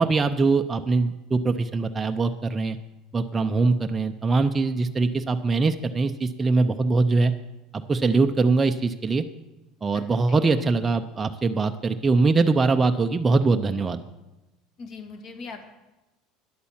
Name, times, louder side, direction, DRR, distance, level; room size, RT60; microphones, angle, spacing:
voice 1, 0.0-2.8 3.1-7.3 7.7-9.2 9.8-14.0, right 3 dB, 15° right, 6 dB, 0.5 m, -22 dB
voice 2, 14.8-15.7, left 4 dB, 45° left, 5 dB, 1.9 m, -39 dB
10.5 x 8.5 x 7.2 m, 1.0 s
cardioid pair, 150°, 0 cm